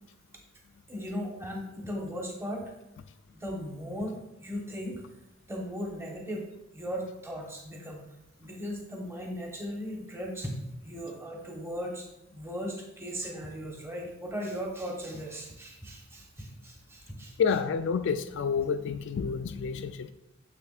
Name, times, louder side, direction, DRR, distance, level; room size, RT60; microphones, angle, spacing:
voice 1, 0.9-2.7 3.3-5.0 5.5-6.5 6.7-8.0 8.4-10.5 10.8-12.1 12.3-17.3, equal, 15° right, -1 dB, 1.1 m, -37 dB
voice 2, 17.4-20.1, left 6 dB, 65° left, 10 dB, 0.3 m, -29 dB
6.9 x 6.6 x 2.4 m, 0.88 s
head